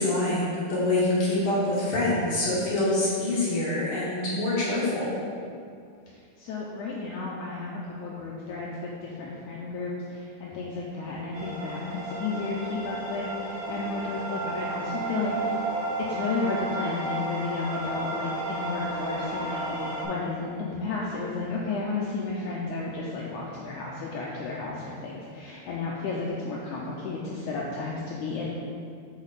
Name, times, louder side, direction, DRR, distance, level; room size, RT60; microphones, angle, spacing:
voice 1, 0.0-5.2, left 2 dB, 60° left, -7 dB, 1.4 m, -25 dB
voice 2, 6.4-15.6 16.1-28.5, left 3 dB, 85° left, -4 dB, 1.7 m, -33 dB
sound 1, 11.3-20.1, right 2 dB, 75° right, 3.5 m, -33 dB
6.2 x 6.2 x 4.0 m, 2.3 s
omnidirectional pair, 4.3 m